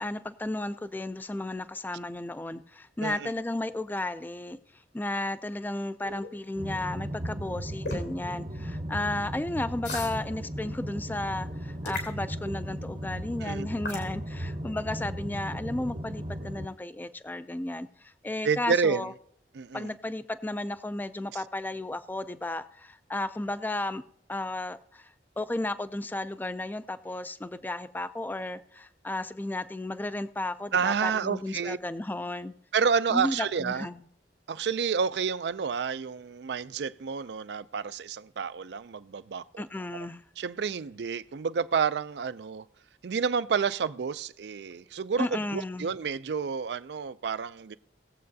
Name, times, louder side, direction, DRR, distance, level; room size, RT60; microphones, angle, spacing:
voice 1, 0.0-4.6 4.9-19.1 19.7-24.0 24.3-25.1 25.4-32.5 33.1-34.0 39.6-40.2 45.2-45.9, left 2 dB, 10° left, 0.3 m, -34 dB
sound 1, 6.0-6.3 7.8-8.1 9.8-10.2 11.9-12.2 13.8-14.1, left 2 dB, 85° left, 3.2 m, -34 dB
sound 2, 6.6-16.7, equal, 40° right, 0.8 m, -36 dB
voice 2, 18.4-19.1 19.5-19.9 30.7-31.8 32.7-33.9 34.5-39.6 40.4-42.6 43.0-47.8, right 6 dB, 70° right, 0.4 m, -29 dB
19.5 x 7.6 x 2.7 m
head